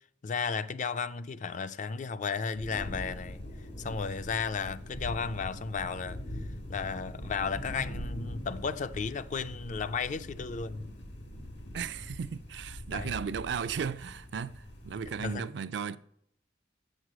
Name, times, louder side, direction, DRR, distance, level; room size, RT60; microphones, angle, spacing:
voice 1, 0.2-3.4 3.8-6.2 6.7-10.9 12.9-13.1 15.2-15.5, left 5 dB, 45° left, 0.4 m, -34 dB
sound 1, 2.6-15.3, equal, 85° left, 1.8 m, -42 dB
voice 2, 11.7-16.0, right 6 dB, 70° right, 0.4 m, -35 dB
7.3 x 6.4 x 6.2 m
head